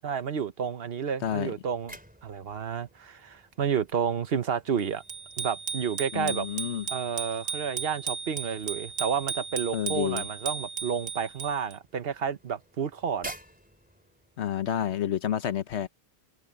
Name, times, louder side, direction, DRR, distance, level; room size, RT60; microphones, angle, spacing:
voice 1, 0.0-1.9 2.2-5.0 5.4-6.5 6.9-13.3, right 7 dB, 55° right, 1.2 m, -30 dB
voice 2, 1.2-1.5 6.1-6.9 9.7-10.3 14.4-15.9, left 10 dB, 70° left, 1.0 m, -29 dB
sound 1, 1.5-14.5, right 1 dB, 5° right, 4.5 m, -52 dB
Bicycle bell, 5.1-11.7, right 6 dB, 85° right, 2.1 m, -35 dB
omnidirectional pair, 1.2 m